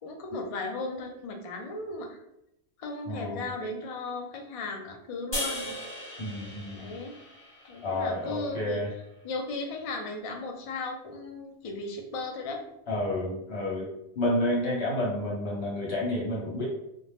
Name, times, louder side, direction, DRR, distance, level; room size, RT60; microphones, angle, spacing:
voice 1, 0.0-2.2 2.8-5.8 6.8-7.2 7.6-8.8 9.2-12.6, left 3 dB, 55° left, 2 dB, 0.4 m, -36 dB
voice 2, 3.0-3.4 6.2-6.9 7.8-8.9 12.9-13.9 14.1-16.6, left 1 dB, 75° left, -4 dB, 1.3 m, -30 dB
sound 1, 5.3-8.6, equal, 25° left, 1.0 m, -38 dB
2.6 x 2.1 x 3.2 m, 0.81 s
omnidirectional pair, 1.1 m